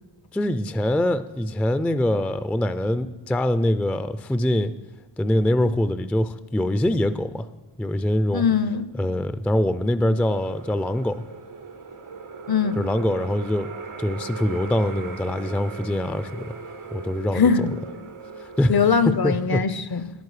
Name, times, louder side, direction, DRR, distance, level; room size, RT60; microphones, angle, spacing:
voice 1, 0.3-4.7 5.2-7.5 7.8-8.4 8.9-11.2 12.8-13.7 14.0-16.5 16.9-17.4 18.4-18.7 19.2-19.6, left 1 dB, 5° left, 12 dB, 0.3 m, -23 dB
voice 2, 8.3-8.8 12.5-12.8 17.3-17.7 18.7-20.1, left 6 dB, 50° left, 13 dB, 0.6 m, -21 dB
sound 1, 10.2-19.5, right 4 dB, 90° right, 1.1 m, -38 dB
10.0 x 9.4 x 4.9 m, 1.1 s
wide cardioid pair, 45°, 49 cm